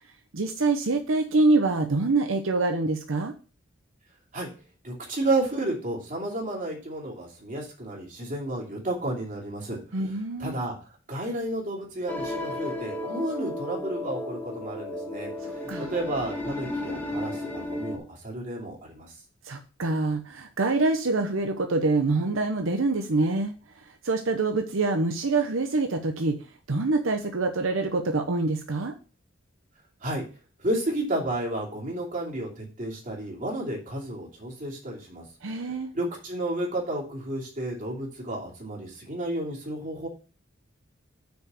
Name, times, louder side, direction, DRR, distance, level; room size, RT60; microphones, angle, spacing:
voice 1, 0.3-3.3 9.9-10.6 15.7-15.9 19.5-23.5 24.0-26.4 26.7-28.9 35.4-35.9, right 3 dB, 85° right, 5 dB, 0.9 m, -25 dB
voice 2, 4.8-10.8 11.1-19.1 30.0-30.2 30.6-35.3 35.5-40.1, right 1 dB, 40° right, -1 dB, 2.8 m, -32 dB
sound 1, 12.1-18.0, left 1 dB, 10° left, 1.3 m, -33 dB
6.5 x 4.8 x 6.8 m, 0.36 s
head